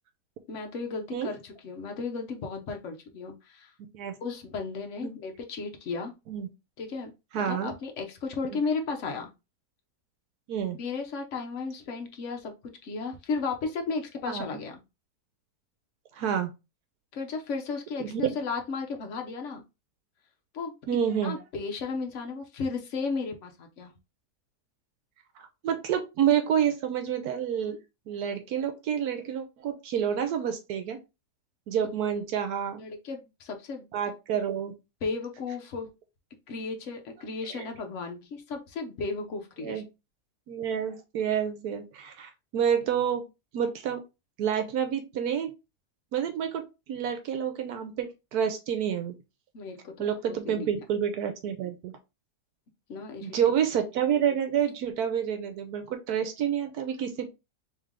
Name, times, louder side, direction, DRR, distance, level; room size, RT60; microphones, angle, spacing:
voice 1, 0.5-3.7 4.2-6.1 6.8-9.3 10.8-12.5 12.8-14.8 17.1-19.6 20.5-20.7 21.2-23.9 32.8-33.9 35.0-35.9 36.5-39.8 49.5-50.8 52.9-53.4, left 4 dB, 55° left, 3 dB, 1.0 m, -34 dB
voice 2, 7.3-7.7 10.5-10.8 14.3-14.4 16.1-16.5 18.0-18.2 20.9-21.4 25.4-27.8 28.1-31.0 31.7-32.8 33.9-34.7 37.5-37.6 39.6-39.8 40.5-43.2 43.5-44.0 44.4-45.5 46.1-49.1 50.0-52.0 53.2-57.3, right 8 dB, 75° right, 7 dB, 1.1 m, -28 dB
3.3 x 3.1 x 3.6 m, 0.26 s
omnidirectional pair, 1.7 m